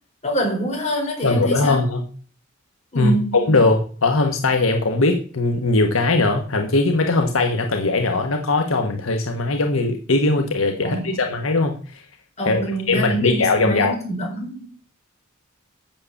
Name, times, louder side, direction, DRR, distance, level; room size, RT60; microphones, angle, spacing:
voice 1, 0.2-1.8 2.9-3.5 10.8-11.2 12.4-14.6, right 1 dB, 35° left, 0 dB, 4.5 m, -25 dB
voice 2, 1.2-2.1 2.9-11.8 12.4-14.0, left 3 dB, 85° left, 4 dB, 1.3 m, -20 dB
7.6 x 7.3 x 7.0 m, 0.41 s
head